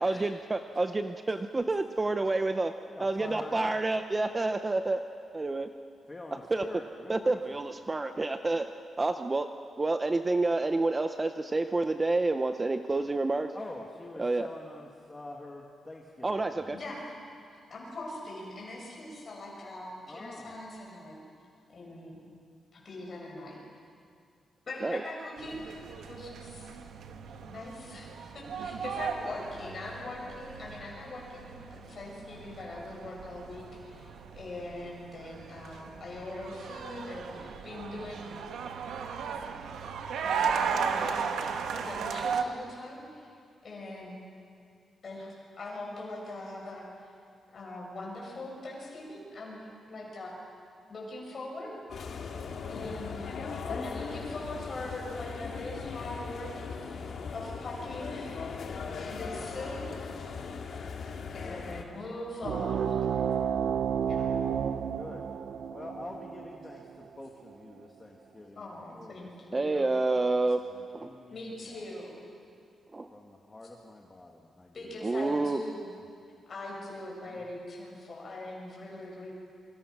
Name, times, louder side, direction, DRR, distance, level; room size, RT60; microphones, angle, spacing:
voice 1, 0.0-2.7 3.0-5.0 5.3-5.7 6.5-6.7 7.1-8.7 9.0-9.5 9.8-13.5 14.2-14.5 16.2-16.8 24.8-25.0 69.5-70.6 70.9-71.1 72.9-73.1 75.0-75.6, right 2 dB, 15° right, 8 dB, 0.6 m, -28 dB
voice 2, 2.9-3.7 6.1-7.6 13.5-16.9 20.1-20.5 29.5-29.8 30.0-30.4 53.6-54.0 61.3-61.6 64.9-65.3 65.7-69.7 70.0-72.0 73.1-75.0 77.2-77.5, left 2 dB, 15° left, 0 dB, 1.6 m, -46 dB
voice 3, 16.7-17.0 17.5-21.2 21.7-22.2 22.7-23.6 24.7-26.7 27.5-38.3 40.2-41.5 41.8-43.3 43.6-44.2 45.0-46.8 47.5-49.6 49.9-50.4 50.9-51.7 52.7-53.4 53.8-57.0 57.3-59.9 61.3-63.0 63.3-63.4 64.1-64.3 68.6-69.9 71.3-72.2 74.7-75.9 76.5-79.3, left 2 dB, 35° left, -3 dB, 7.3 m, -42 dB
sound 1, 25.4-42.4, right 6 dB, 85° right, 1.4 m, -36 dB
sound 2, 51.9-61.8, left 5 dB, 55° left, 2.1 m, -39 dB
sound 3, 62.4-67.5, right 8 dB, 60° right, 0.8 m, -31 dB
28.5 x 25.5 x 6.1 m, 2.4 s
wide cardioid pair, 180°, 0 cm